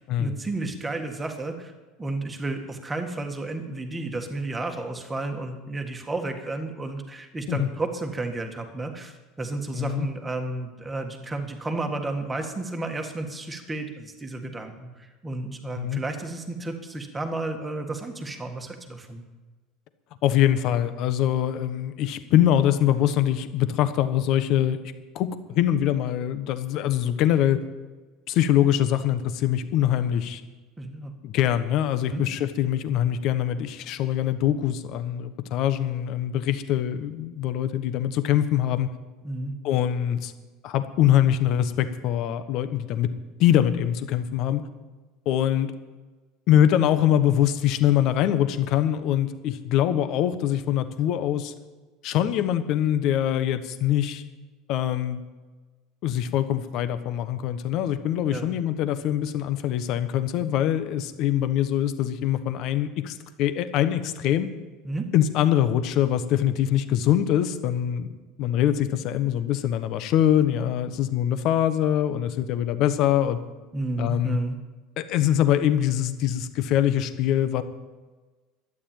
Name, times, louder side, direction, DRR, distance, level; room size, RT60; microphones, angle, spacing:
voice 1, 0.2-1.7 2.0-19.2 30.8-31.1 32.1-32.2 39.2-39.5 58.3-58.6 64.8-65.1 73.7-74.6, right 2 dB, 10° right, 4 dB, 1.7 m, -32 dB
voice 2, 9.8-10.1 15.7-16.0 20.2-24.8 25.1-27.6 28.3-30.4 31.2-38.9 39.6-40.3 40.6-43.1 43.4-44.7 45.2-45.7 46.5-51.5 52.0-54.2 54.7-55.2 56.0-64.5 65.1-73.4 74.0-74.4 75.0-77.6, left 11 dB, 50° left, 11 dB, 1.1 m, -23 dB
12.5 x 9.9 x 8.9 m, 1.3 s
cardioid pair, 155°, 0 cm